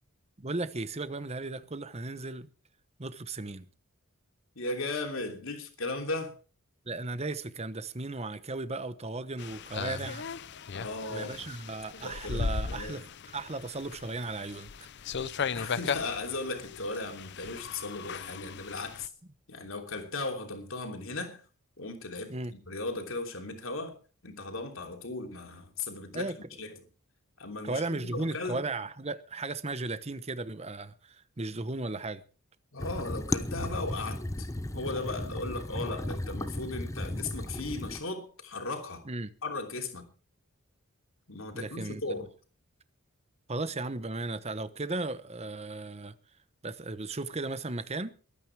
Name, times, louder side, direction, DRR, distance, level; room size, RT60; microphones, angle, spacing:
voice 1, 0.4-2.5 3.0-3.7 6.9-10.2 11.1-13.1 13.3-14.7 22.3-22.5 26.1-26.4 27.6-32.2 39.0-39.3 41.5-42.3 43.5-46.1 46.6-48.1, right 2 dB, 30° right, 1.0 m, -36 dB
voice 2, 4.5-6.3 10.7-11.5 12.0-13.0 15.5-19.1 19.5-21.4 21.8-24.0 24.2-26.3 26.6-26.8 27.4-28.6 32.7-34.5 34.7-39.1 39.4-40.1 41.3-42.3, left 2 dB, 70° left, 3.2 m, -37 dB
sound 1, 9.4-19.1, left 5 dB, 50° left, 0.6 m, -37 dB
sound 2, 32.8-38.0, left 1 dB, 15° left, 0.8 m, -35 dB
22.0 x 9.3 x 4.8 m
head